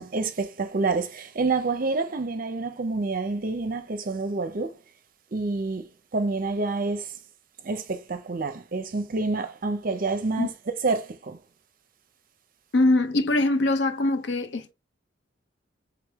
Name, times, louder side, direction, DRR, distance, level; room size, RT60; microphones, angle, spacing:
voice 1, 0.0-4.8 5.3-7.1 7.6-10.5 10.8-11.4, right 3 dB, 45° right, 0.5 m, -28 dB
voice 2, 12.7-14.7, left 2 dB, 60° left, 0.6 m, -22 dB
3.5 x 3.4 x 3.5 m
head